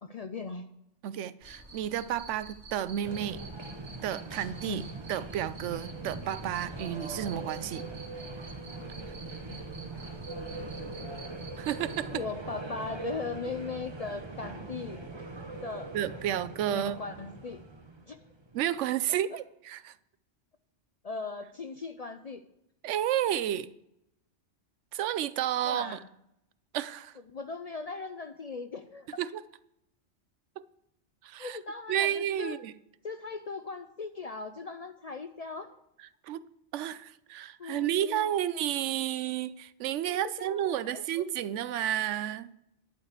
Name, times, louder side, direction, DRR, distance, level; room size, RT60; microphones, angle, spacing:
voice 1, 0.0-0.7 4.7-4.9 9.5-9.6 11.0-11.1 12.1-15.0 15.6-16.0 16.3-16.4 16.7-17.6 18.1-18.2 21.0-22.4 25.6-26.1 27.3-29.1 31.4-32.6 33.0-35.7 37.6-38.3 40.1-41.2, left 4 dB, 55° left, 0.4 m, -39 dB
voice 2, 1.0-3.4 4.0-4.8 5.1-7.9 11.6-12.2 15.9-17.0 18.5-19.9 22.8-23.7 24.9-26.0 26.7-27.1 29.2-29.4 30.6-30.7 31.2-31.6 31.9-32.7 36.2-36.4 36.7-42.5, right 11 dB, 85° right, 0.9 m, -31 dB
Cricket, 1.4-12.1, right 3 dB, 65° right, 2.2 m, -49 dB
sound 1, 3.0-18.8, right 3 dB, 25° right, 0.9 m, -41 dB
11.0 x 4.9 x 8.1 m
omnidirectional pair, 1.2 m